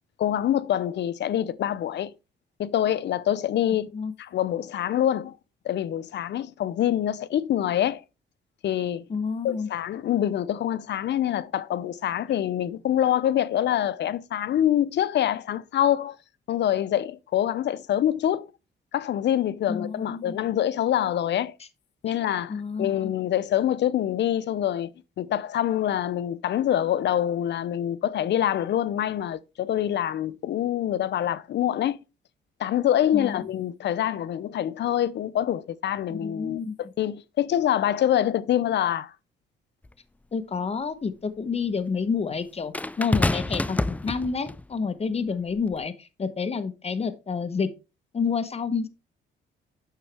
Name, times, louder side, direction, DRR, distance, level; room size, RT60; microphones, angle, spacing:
voice 1, 0.2-2.1 2.6-3.9 4.2-5.4 5.6-8.0 8.6-9.0 9.4-16.2 16.5-18.5 18.9-21.5 22.0-22.5 22.8-32.0 32.6-36.6 37.0-39.1, left 11 dB, 60° left, 0.7 m, -25 dB
voice 2, 9.1-9.7 19.7-20.4 22.5-23.1 33.1-33.4 36.1-36.8 40.3-47.7 48.1-48.9, left 5 dB, 30° left, 1.1 m, -29 dB
sound 1, 39.8-39.9 42.7-44.6 45.6-45.8, left 2 dB, 5° left, 0.3 m, -27 dB
9.1 x 6.4 x 3.4 m
cardioid pair, 90°, 20 cm